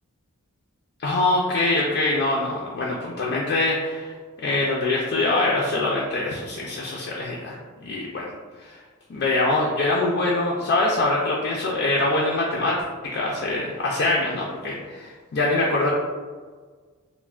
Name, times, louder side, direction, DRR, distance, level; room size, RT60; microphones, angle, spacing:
voice 1, 1.0-4.1 4.4-7.6 7.8-8.3 8.6-8.8 9.1-12.8 13.1-15.9, left 2 dB, 50° left, -4 dB, 0.3 m, -24 dB
3.1 x 2.0 x 2.3 m, 1.5 s
head